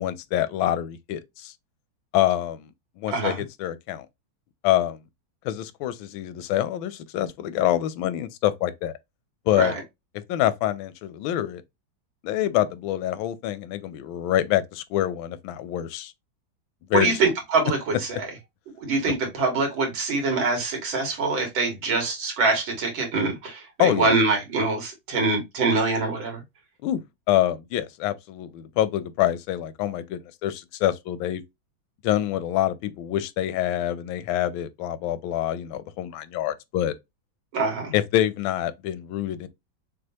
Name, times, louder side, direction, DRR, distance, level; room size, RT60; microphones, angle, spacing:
voice 1, 0.0-1.5 2.1-2.7 3.0-3.3 3.6-4.1 4.6-5.0 5.4-8.9 9.5-9.7 10.3-11.6 12.2-16.1 16.9-17.1 23.8-24.1 26.8-27.0 27.3-31.4 32.0-36.9 37.9-39.5, left 12 dB, 85° left, 1.4 m, -26 dB
voice 2, 16.9-18.3 18.8-26.4 37.5-37.9, right 3 dB, 80° right, 2.6 m, -24 dB
6.3 x 2.4 x 2.8 m
omnidirectional pair, 2.1 m